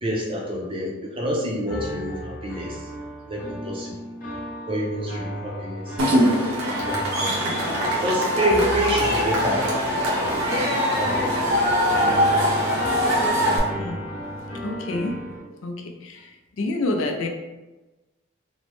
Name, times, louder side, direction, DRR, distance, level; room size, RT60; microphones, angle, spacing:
voice 1, 0.0-2.8 3.3-3.9 4.7-5.8 6.7-7.0 8.0-9.7 11.0-11.3, right 1 dB, 25° right, -2 dB, 0.5 m, -27 dB
sound 1, 1.7-15.4, left 1 dB, 40° left, 1.0 m, -33 dB
Cheering / Crowd, 6.0-13.6, equal, 85° right, 0.7 m, -22 dB
voice 2, 14.6-15.2 15.6-16.3 16.6-17.3, left 2 dB, 75° left, 3 dB, 0.4 m, -28 dB
3.0 x 2.0 x 3.1 m, 1.1 s
head